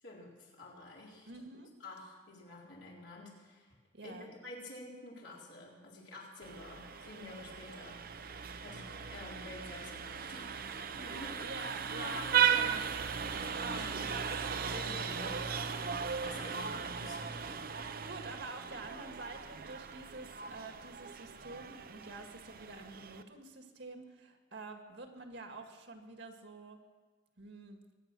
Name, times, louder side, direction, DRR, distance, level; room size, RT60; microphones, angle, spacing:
voice 1, 0.0-1.3 1.8-3.7 4.0-8.0 8.6-10.5 11.0-11.6 12.0-12.8 13.6-14.1 14.7-15.4 16.2-17.7, left 2 dB, 75° left, -3 dB, 4.3 m, -49 dB
voice 2, 1.2-1.7 3.9-4.3 11.4-14.6 16.0-16.1 16.6-16.9 18.0-26.8 27.4-27.8, right 3 dB, 70° right, 5 dB, 1.9 m, -48 dB
Vehicle horn car horn honking, 6.4-23.2, right 7 dB, 50° right, 0.8 m, -37 dB
23.5 x 9.5 x 6.2 m, 1.4 s
head